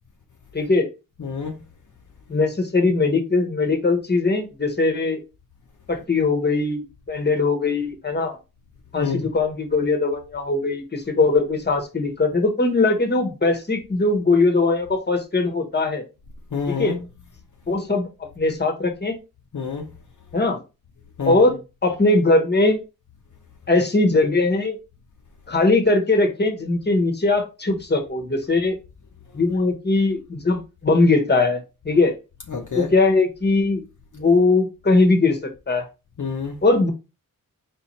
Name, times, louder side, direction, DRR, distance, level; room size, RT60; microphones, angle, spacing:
voice 1, 0.5-0.9 2.3-5.2 5.9-8.4 8.9-16.0 16.7-17.0 17.7-19.2 20.3-20.6 21.3-22.8 23.7-24.8 25.5-28.8 29.3-32.1 32.7-33.8 34.1-35.8 36.6-36.9, left 3 dB, 30° left, 1.0 m, -20 dB
voice 2, 1.2-1.6 8.9-9.3 16.5-17.0 19.5-19.9 21.2-21.5 32.5-32.9 36.2-36.6, left 5 dB, 60° left, 0.7 m, -27 dB
4.2 x 3.3 x 3.1 m
wide cardioid pair, 70°, 34 cm